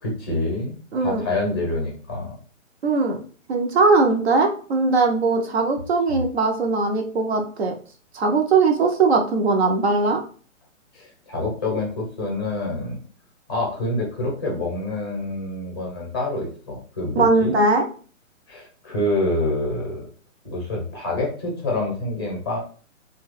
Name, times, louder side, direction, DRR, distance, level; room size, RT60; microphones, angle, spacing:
voice 1, 0.0-2.3 6.1-6.2 10.9-13.0 13.5-17.6 18.5-20.0 20.4-22.6, left 2 dB, 20° left, -1 dB, 0.6 m, -27 dB
voice 2, 0.9-1.2 2.8-3.2 3.5-7.7 8.1-10.2 17.2-17.9, right 3 dB, 55° right, 3 dB, 0.6 m, -20 dB
2.8 x 2.2 x 3.1 m, 0.42 s
hypercardioid pair, 175°, 40 cm